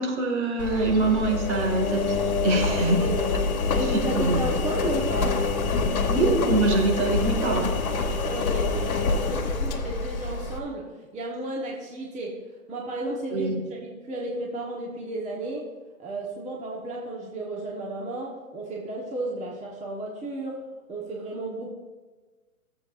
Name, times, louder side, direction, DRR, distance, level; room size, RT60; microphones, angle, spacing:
voice 1, 0.0-3.0 3.8-4.4 6.1-7.7 13.3-13.6, right 2 dB, 50° right, 2 dB, 2.3 m, -24 dB
Engine, 0.6-10.6, left 4 dB, 80° left, 1.3 m, -26 dB
voice 2, 2.5-3.3 3.7-5.3 8.2-10.9 11.1-12.3 12.7-15.7 16.0-20.6 20.9-21.7, right 2 dB, 15° right, -2 dB, 1.3 m, -33 dB
15.0 x 7.6 x 2.6 m, 1.3 s
hypercardioid pair, 120°, 42 cm